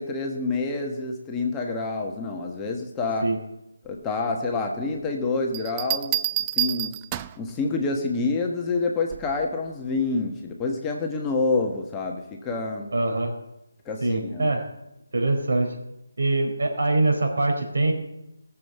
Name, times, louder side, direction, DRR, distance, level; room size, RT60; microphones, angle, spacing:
voice 1, 0.0-3.3 3.8-6.2 6.6-6.9 7.4-12.9 13.8-14.5, left 3 dB, 15° left, 1 dB, 1.3 m, -27 dB
Bell, 5.5-7.5 9.1-9.4, right 14 dB, 20° right, 0.4 m, -28 dB
voice 2, 12.9-13.4 14.0-14.7 15.1-15.7 16.2-17.9, right 2 dB, 65° right, 2 dB, 4.6 m, -23 dB
17.0 x 7.3 x 8.0 m, 0.88 s
figure-of-eight pair, 155°, 0 cm